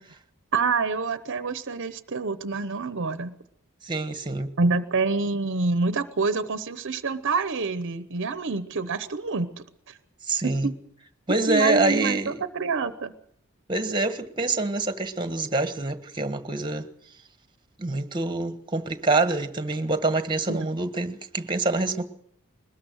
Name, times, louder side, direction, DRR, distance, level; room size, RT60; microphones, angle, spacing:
voice 1, 0.5-3.4 4.6-9.5 9.9-10.0 10.4-10.7 11.3-13.1 20.5-20.7, right 4 dB, 55° right, 0.8 m, -27 dB
voice 2, 3.8-4.5 10.3-10.7 11.3-12.3 13.7-16.9 17.8-22.0, right 3 dB, 20° right, 1.4 m, -26 dB
22.0 x 20.0 x 6.4 m
head